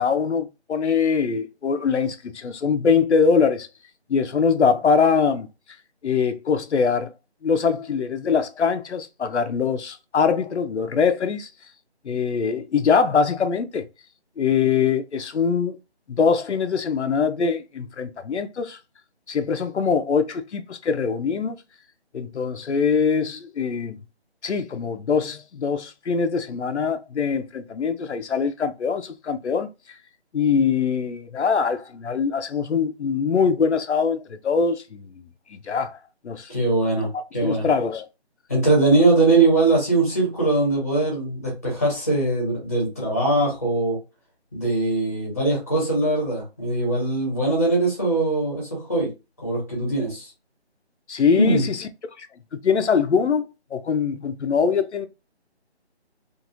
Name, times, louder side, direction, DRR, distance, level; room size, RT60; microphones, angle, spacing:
voice 1, 0.0-3.7 4.1-5.5 6.0-7.1 7.4-11.5 12.1-13.8 14.4-15.8 16.1-18.8 19.3-21.6 22.1-24.0 24.4-29.7 30.3-35.1 35.5-36.0 36.2-36.5 37.4-38.1 51.1-51.8 52.2-52.3 52.6-55.1, left 6 dB, 90° left, 0.6 m, -23 dB
voice 2, 36.5-37.7 38.5-44.0 44.5-49.1 49.4-50.3 51.3-51.6, right 2 dB, 15° left, 0.9 m, -21 dB
2.9 x 2.5 x 2.5 m
figure-of-eight pair, 170°, 33 cm